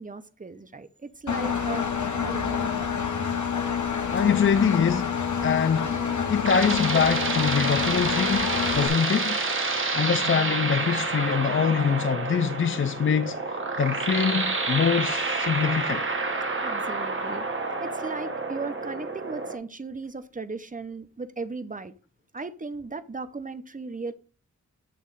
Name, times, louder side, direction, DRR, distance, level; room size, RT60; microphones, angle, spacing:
voice 1, 0.0-1.9 2.2-3.0 16.6-17.4 17.8-21.9 22.3-24.1, right 3 dB, 25° right, 0.6 m, -37 dB
Engine, 1.3-8.9, left 7 dB, 70° left, 1.0 m, -28 dB
voice 2, 4.1-6.0 6.3-9.4 9.9-16.0, left 7 dB, 45° left, 0.4 m, -24 dB
sound 1, 5.9-19.6, right 3 dB, 40° right, 1.1 m, -29 dB
8.5 x 3.0 x 5.4 m
wide cardioid pair, 85°, 30 cm